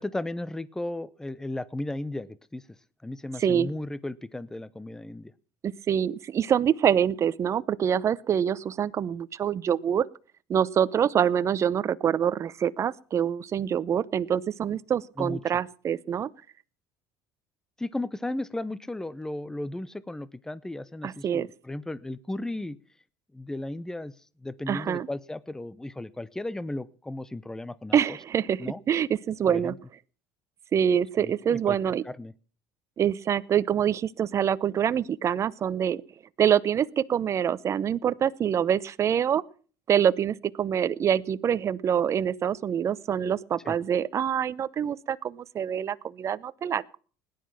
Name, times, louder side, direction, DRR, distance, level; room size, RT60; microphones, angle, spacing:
voice 1, 0.0-2.6 3.0-5.3 15.2-15.4 17.8-22.8 23.3-24.1 24.4-28.2 28.6-28.8 29.5-29.8 31.2-31.8 32.0-32.3 43.6-43.7, left 1 dB, 5° left, 19 dB, 0.7 m, -35 dB
voice 2, 3.4-3.7 5.6-10.0 10.5-16.3 21.0-21.5 24.7-25.1 27.9-28.6 28.9-29.7 30.7-32.0 33.0-36.0 36.4-39.4 39.9-47.0, right 8 dB, 40° right, 17 dB, 0.7 m, -25 dB
17.5 x 10.5 x 5.8 m, 0.41 s
supercardioid pair, 100°, 8 cm